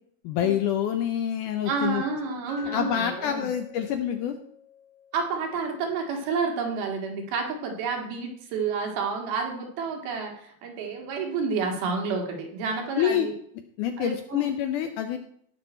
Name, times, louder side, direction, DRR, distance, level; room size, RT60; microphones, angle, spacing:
voice 1, 0.2-2.0 2.7-4.4 13.0-13.3 13.8-15.2, left 10 dB, 80° left, 7 dB, 1.9 m, -27 dB
voice 2, 1.6-3.5 5.1-13.3 14.0-14.5, right 4 dB, 80° right, 2 dB, 3.7 m, -30 dB
Glass, 2.5-6.6, left 6 dB, 60° left, 1.7 m, -46 dB
17.0 x 6.2 x 4.4 m, 0.67 s
omnidirectional pair, 4.3 m